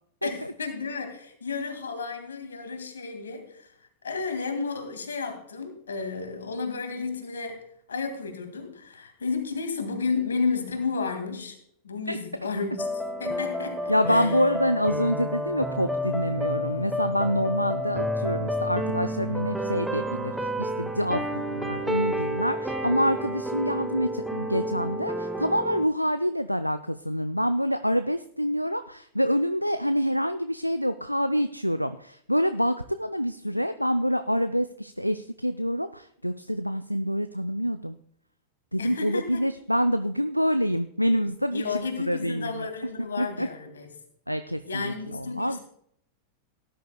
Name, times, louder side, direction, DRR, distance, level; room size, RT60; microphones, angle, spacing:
voice 1, 0.2-3.7 4.0-11.6 11.8-12.9 13.2-14.3 38.8-39.4 41.5-43.9 44.7-45.6, left 4 dB, 70° left, 6 dB, 2.1 m, -32 dB
sound 1, 12.8-25.9, equal, 5° right, 0.9 m, -30 dB
voice 2, 13.9-38.0 38.7-42.7 43.2-43.5 44.3-45.6, equal, 90° left, 10 dB, 0.3 m, -26 dB
17.5 x 10.0 x 2.2 m, 0.68 s
figure-of-eight pair, 90°, 0 cm